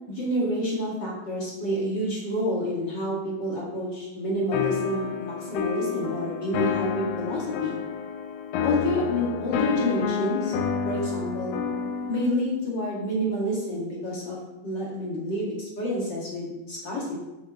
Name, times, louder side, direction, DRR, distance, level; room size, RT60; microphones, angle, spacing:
voice 1, 0.1-7.8 8.6-10.5 10.8-11.6 12.1-14.4 14.6-17.2, equal, 35° left, -5 dB, 1.9 m, -28 dB
sound 1, 4.5-12.3, left 7 dB, 85° left, 2.6 m, -29 dB
9.4 x 8.3 x 3.1 m, 1.0 s
omnidirectional pair, 4.5 m